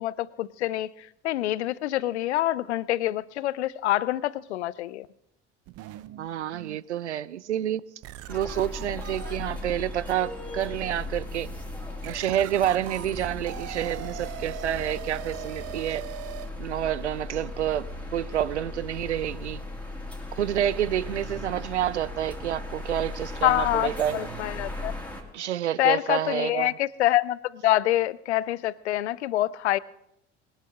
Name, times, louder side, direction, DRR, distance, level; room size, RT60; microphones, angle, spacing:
voice 1, 0.0-5.1 23.4-24.9 25.8-29.8, left 14 dB, 70° left, 0.5 m, -26 dB
sound 1, 5.7-6.8 7.4-7.5 8.0-16.5, right 13 dB, 45° right, 0.7 m, -42 dB
voice 2, 6.2-7.8 8.3-11.5 12.0-16.1 16.6-19.6 20.4-24.3 25.3-26.7, right 11 dB, 80° right, 0.5 m, -28 dB
sound 2, 8.3-25.2, left 2 dB, 5° left, 2.6 m, -37 dB
21.0 x 12.0 x 3.5 m
figure-of-eight pair, 60°, 35 cm